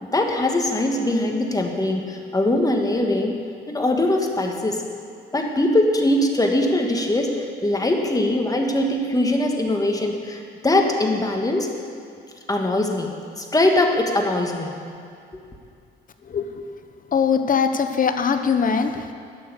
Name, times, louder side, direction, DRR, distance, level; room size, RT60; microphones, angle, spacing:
voice 1, 0.0-3.4 3.7-4.8 5.3-11.7 12.5-14.7, left 1 dB, 20° left, 2 dB, 1.6 m, -21 dB
voice 2, 16.3-16.6 17.1-19.1, left 6 dB, 45° left, 8 dB, 0.9 m, -21 dB
12.0 x 6.5 x 8.1 m, 2.4 s
cardioid pair, 90°, 20 cm